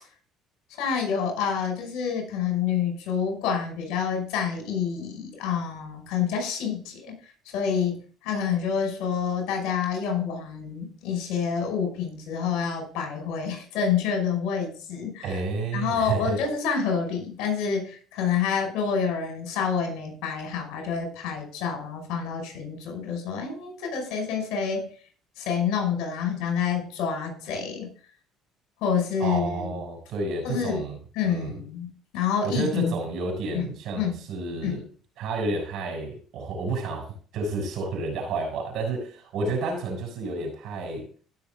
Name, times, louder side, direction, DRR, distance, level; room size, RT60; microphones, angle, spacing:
voice 1, 0.7-7.2 7.5-15.4 15.7-24.9 25.4-27.9 28.8-29.8 30.4-30.8 31.2-33.0 33.5-33.7 33.9-34.2 34.6-34.8, left 6 dB, 80° left, 3 dB, 5.5 m, -28 dB
voice 2, 15.2-16.4 29.2-31.0 31.2-31.5 32.4-34.8 35.2-41.1, right 3 dB, 70° right, 3 dB, 6.5 m, -30 dB
16.5 x 6.8 x 3.7 m, 0.41 s
supercardioid pair, 80°, 0 cm